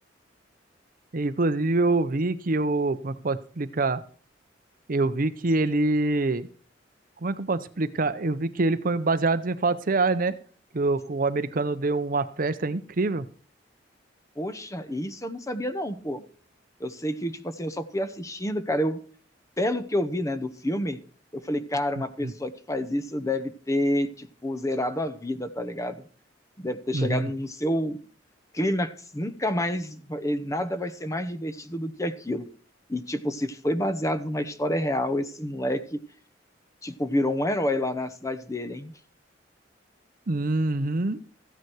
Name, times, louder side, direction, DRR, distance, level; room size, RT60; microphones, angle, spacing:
voice 1, 1.1-4.0 4.9-6.5 7.2-10.4 10.7-13.2 22.0-22.3 26.9-27.3 40.3-41.2, right 3 dB, 45° right, 13 dB, 0.7 m, -25 dB
voice 2, 14.4-16.2 16.8-19.0 19.6-21.0 21.3-26.0 26.6-28.0 28.5-32.5 32.9-36.0 36.8-38.9, left 1 dB, 15° left, 11 dB, 0.8 m, -28 dB
14.5 x 9.4 x 4.6 m, 0.42 s
head